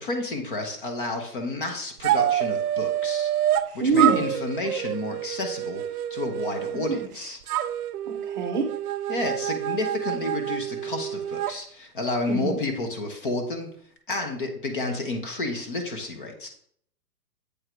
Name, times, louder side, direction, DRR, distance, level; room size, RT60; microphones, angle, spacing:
voice 1, 0.0-3.3 3.7-7.4 9.1-13.7 14.1-16.5, left 2 dB, 30° left, 4 dB, 0.8 m, -31 dB
sound 1, 2.0-3.7 4.0-7.1 7.5-11.5, right 11 dB, 65° right, 0.5 m, -27 dB
voice 2, 3.8-4.2 6.7-7.0 8.1-8.7 12.3-12.6, right 4 dB, 30° right, 2 dB, 0.7 m, -24 dB
8.0 x 3.6 x 4.4 m, 0.63 s
hypercardioid pair, 170°, 49 cm